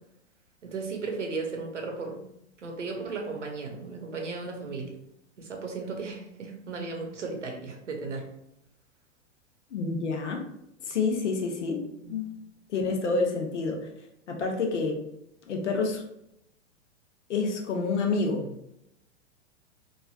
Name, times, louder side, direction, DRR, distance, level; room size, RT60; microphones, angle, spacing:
voice 1, 0.6-2.2 2.6-4.9 5.4-8.2 12.0-12.1, right 4 dB, 85° right, 2 dB, 0.8 m, -35 dB
voice 2, 9.7-10.4 10.8-11.8 12.1-12.3 12.7-13.8 14.3-15.0 15.5-16.0 17.3-18.7, left 4 dB, 75° left, 3 dB, 0.8 m, -28 dB
3.1 x 2.5 x 2.3 m, 0.80 s
hypercardioid pair, 105°, 35 cm